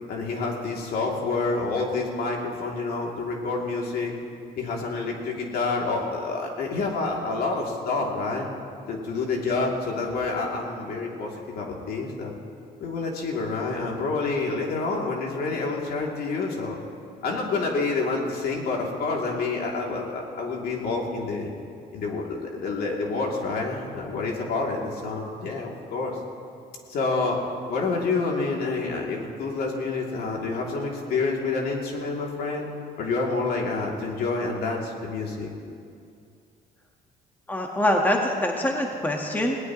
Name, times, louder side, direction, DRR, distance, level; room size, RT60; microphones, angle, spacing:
voice 1, 0.1-4.1 4.6-8.5 8.9-12.3 12.8-16.8 17.2-21.5 21.9-26.2 26.9-27.4 27.7-32.7 33.0-35.5, left 3 dB, 65° left, -1 dB, 3.0 m, -28 dB
voice 2, 37.5-39.6, left 1 dB, 10° left, 1 dB, 1.6 m, -24 dB
20.5 x 18.0 x 3.2 m, 2.4 s
cardioid pair, 110°, 17 cm